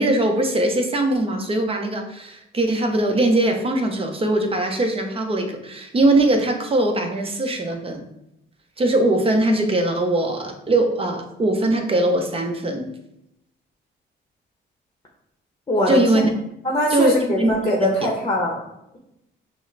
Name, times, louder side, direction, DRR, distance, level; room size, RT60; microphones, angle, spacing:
voice 1, 0.0-8.1 8.8-12.9 15.9-16.3 16.9-17.9, right 1 dB, 30° right, 4 dB, 0.7 m, -21 dB
voice 2, 15.7-16.2 16.6-18.6, left 1 dB, 20° left, -1 dB, 0.9 m, -22 dB
6.1 x 2.1 x 3.3 m, 0.83 s
cardioid pair, 90°, 20 cm